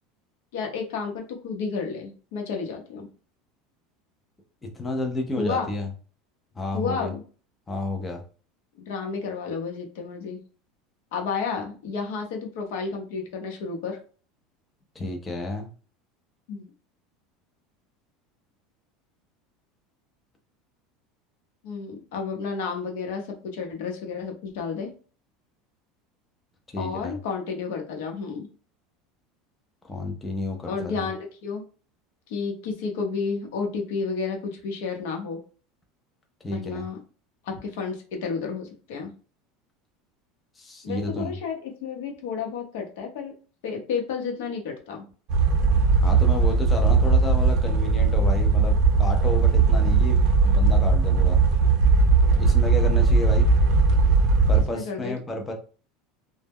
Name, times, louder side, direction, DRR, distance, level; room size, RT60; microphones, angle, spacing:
voice 1, 0.5-3.1 5.4-5.7 6.7-7.2 8.8-10.4 11.1-14.0 16.5-16.7 21.6-24.9 26.8-28.5 30.7-31.6 32.3-35.4 36.5-37.0 37.4-39.1 40.8-43.3 43.6-45.1 52.3-52.4 54.7-55.1, left 5 dB, 75° left, 2 dB, 0.7 m, -31 dB
voice 2, 4.7-5.9 6.6-7.1 7.7-8.2 15.0-15.7 26.7-27.1 29.8-31.0 36.4-36.8 40.6-41.3 46.0-51.4 52.4-53.5 54.5-55.5, left 2 dB, 10° left, 2 dB, 0.4 m, -31 dB
sound 1, 45.3-54.6, right 4 dB, 45° right, 0.5 m, -19 dB
2.1 x 2.0 x 3.4 m, 0.38 s
cardioid pair, 170°, 0 cm